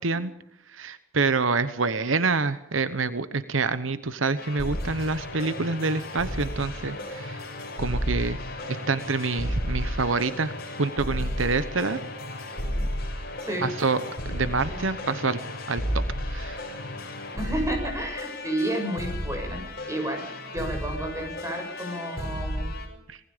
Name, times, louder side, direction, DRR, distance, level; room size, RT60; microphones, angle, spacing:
voice 1, 0.7-7.4 7.8-8.4 8.9-10.5 10.8-12.0 13.6-14.0 14.3-15.4 15.7-16.0 16.3-16.6 23.1-23.2, right 4 dB, 80° right, 13 dB, 1.1 m, -27 dB
sound 1, 4.4-22.9, left 1 dB, 55° left, 6.6 m, -33 dB
voice 2, 17.3-19.6 19.9-22.7, right 1 dB, 15° right, 4 dB, 6.9 m, -31 dB
26.0 x 19.5 x 5.1 m, 0.76 s
head